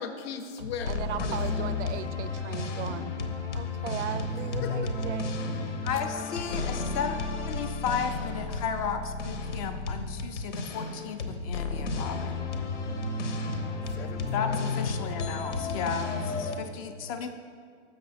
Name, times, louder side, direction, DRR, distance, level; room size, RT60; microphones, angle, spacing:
voice 1, 0.0-1.8 4.0-5.1 6.4-7.0 13.9-15.4, left 6 dB, 60° left, 8 dB, 0.7 m, -41 dB
sound 1, 0.6-16.6, left 3 dB, 90° left, 0.9 m, -32 dB
voice 2, 0.9-3.2 3.5-5.3, right 11 dB, 75° right, 13 dB, 0.5 m, -37 dB
voice 3, 5.8-7.2 7.5-12.5 14.3-17.3, left 6 dB, 30° left, 7 dB, 0.4 m, -34 dB
6.5 x 6.5 x 4.1 m, 2.1 s
hypercardioid pair, 130°, 35 cm